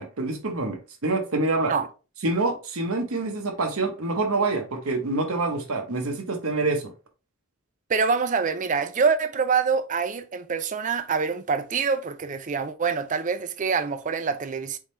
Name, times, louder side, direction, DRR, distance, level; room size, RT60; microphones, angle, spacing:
voice 1, 0.0-1.7 2.2-6.8, right 3 dB, 75° right, 1.0 m, -26 dB
voice 2, 7.9-14.8, right 5 dB, 35° right, 0.4 m, -25 dB
4.3 x 3.7 x 3.1 m
head